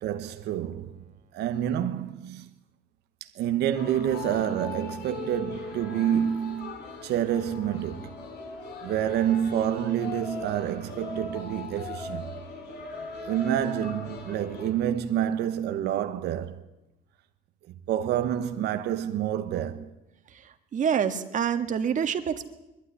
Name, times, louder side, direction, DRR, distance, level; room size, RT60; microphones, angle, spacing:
voice 1, 0.0-1.0 1.3-2.5 3.2-6.8 7.0-8.1 8.8-12.3 13.2-16.6 17.7-19.9, right 10 dB, 75° right, 1.2 m, -28 dB
sound 1, 3.7-14.7, left 3 dB, 80° left, 4.4 m, -39 dB
voice 2, 20.7-22.4, right 7 dB, 50° right, 1.9 m, -26 dB
21.5 x 12.5 x 9.9 m
cardioid pair, 110°, 17 cm